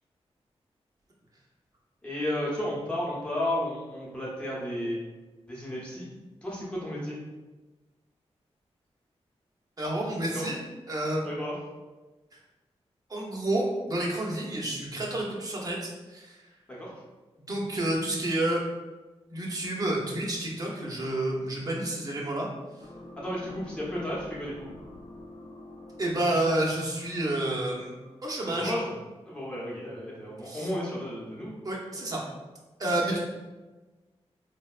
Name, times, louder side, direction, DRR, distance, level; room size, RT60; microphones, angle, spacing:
voice 1, 2.0-5.0 5.5-6.1 6.4-7.2 10.2-10.4 11.2-11.5 16.7-16.9 23.2-24.7 28.5-28.9 29.3-31.5 33.1-33.2, left 1 dB, 10° left, -6 dB, 1.0 m, -33 dB
voice 2, 9.8-10.6 10.9-11.3 12.3-12.4 13.1-16.4 17.5-18.6 19.3-22.5 26.0-27.9 28.2-28.7 30.4-30.7 31.6-32.2 32.8-33.2, right 1 dB, 35° right, -3 dB, 0.8 m, -29 dB
sound 1, 22.8-28.4, left 1 dB, 65° left, 0.5 m, -48 dB
3.9 x 2.1 x 2.4 m, 1.2 s
cardioid pair, 70°, 11 cm